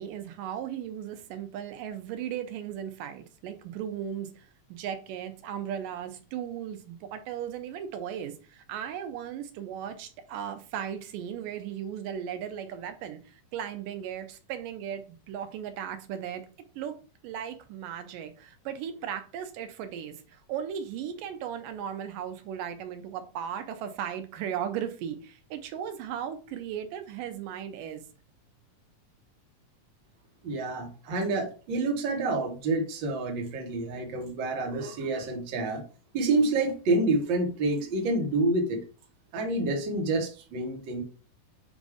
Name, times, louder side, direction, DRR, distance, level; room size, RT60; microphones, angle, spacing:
voice 1, 0.0-16.4 16.8-16.9 17.2-28.0, right 9 dB, 90° right, 2.5 m, -36 dB
voice 2, 30.4-35.8 36.1-38.8 39.3-41.0, right 2 dB, 50° right, 1.5 m, -28 dB
7.3 x 2.7 x 4.8 m
omnidirectional pair, 3.7 m